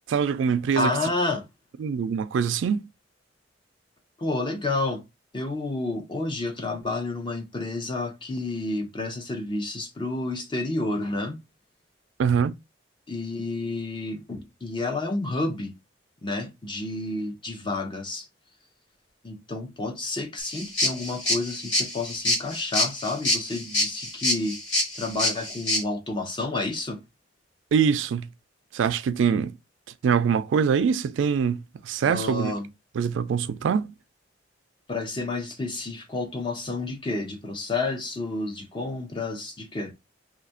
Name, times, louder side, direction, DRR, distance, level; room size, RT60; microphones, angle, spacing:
voice 1, 0.1-1.0 1.8-2.9 12.2-12.6 27.7-28.3 28.7-29.6 30.0-32.5 33.0-33.9, right 6 dB, 80° right, 0.3 m, -24 dB
voice 2, 0.8-1.5 4.2-5.0 5.3-11.4 13.1-15.7 16.2-18.3 19.2-24.6 24.9-27.0 32.0-32.7 34.9-39.9, left 2 dB, 25° left, 0.6 m, -30 dB
sound 1, 20.4-25.8, left 1 dB, 80° left, 1.6 m, -26 dB
2.7 x 2.4 x 4.2 m
head